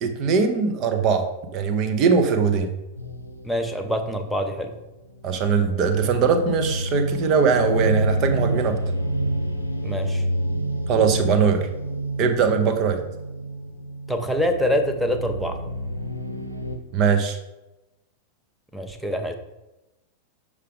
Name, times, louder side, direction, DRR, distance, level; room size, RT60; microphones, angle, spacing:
voice 1, 0.0-1.2 1.5-2.7 5.2-8.8 10.9-11.7 12.2-13.0 16.9-17.4, right 5 dB, 35° right, 6 dB, 0.8 m, -21 dB
sound 1, 3.0-16.8, right 1 dB, 85° left, 0.6 m, -29 dB
voice 2, 3.4-4.7 9.8-10.2 14.1-15.6 18.7-19.3, equal, ahead, 4 dB, 0.7 m, -25 dB
6.6 x 4.9 x 3.6 m, 0.98 s
figure-of-eight pair, 90°, 0 cm